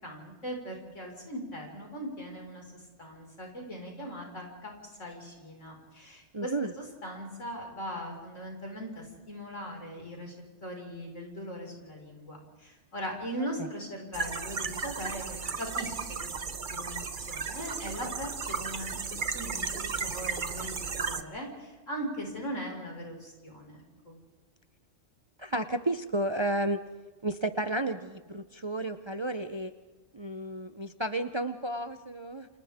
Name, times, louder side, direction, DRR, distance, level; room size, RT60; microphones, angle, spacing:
voice 1, 0.0-4.7 5.0-10.3 10.6-16.3 16.7-24.2, equal, 80° left, 0 dB, 5.7 m, -40 dB
voice 2, 6.3-6.7 13.6-13.7 25.4-26.8 27.2-29.7 30.1-32.5, right 1 dB, 30° right, 9 dB, 0.7 m, -32 dB
sound 1, 14.1-21.2, right 5 dB, 45° right, 1.1 m, -35 dB
29.0 x 27.0 x 3.6 m, 1.3 s
omnidirectional pair, 1.3 m